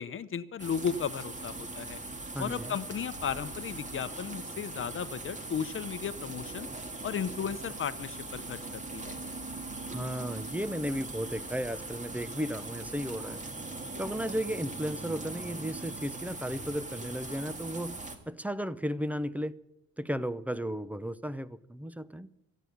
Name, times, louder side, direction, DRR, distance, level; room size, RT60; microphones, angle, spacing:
voice 1, 0.0-2.0 2.4-6.7 7.0-9.2, left 7 dB, 45° left, 0.8 m, -35 dB
sound 1, 0.6-18.2, right 2 dB, 25° right, 2.2 m, -40 dB
voice 2, 2.3-2.8 9.9-13.4 14.0-19.5 20.0-22.3, equal, 5° right, 0.6 m, -34 dB
14.5 x 9.3 x 8.4 m
cardioid pair, 90°, 30 cm